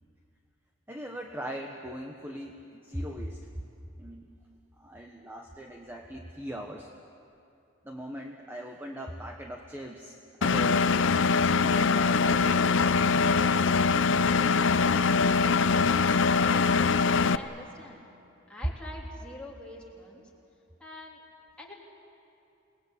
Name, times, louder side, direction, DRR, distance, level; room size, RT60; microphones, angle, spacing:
voice 1, 0.9-3.4 4.0-4.3 4.8-6.9 7.8-11.0 11.6-15.0, equal, 10° right, 2 dB, 1.1 m, -40 dB
Engine, 10.4-17.4, left 5 dB, 65° left, 0.6 m, -23 dB
voice 2, 17.2-18.0 18.5-20.3 20.8-21.2 21.6-21.7, left 1 dB, 5° left, -4 dB, 3.3 m, -45 dB
28.0 x 20.0 x 8.4 m, 2.7 s
head